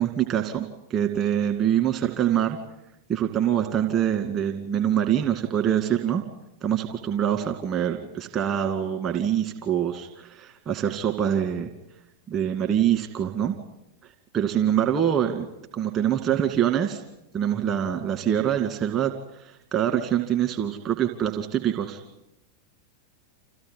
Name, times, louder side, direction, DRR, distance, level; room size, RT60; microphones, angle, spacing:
voice 1, 0.0-2.6 3.1-6.2 6.6-11.7 12.3-13.5 14.3-15.5 15.7-17.0 17.3-22.0, right 10 dB, 30° right, 3 dB, 2.1 m, -25 dB
27.0 x 16.0 x 9.7 m, 0.92 s
figure-of-eight pair, 90°, 0 cm